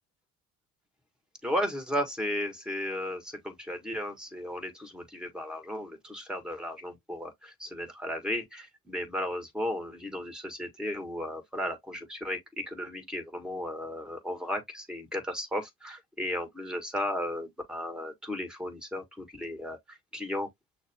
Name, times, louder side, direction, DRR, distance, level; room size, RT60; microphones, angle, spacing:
voice 1, 1.4-12.4 12.7-19.8 20.1-20.5, left 1 dB, ahead, 1.7 m, -35 dB
6.3 x 2.1 x 3.5 m
cardioid pair, 105°, 41 cm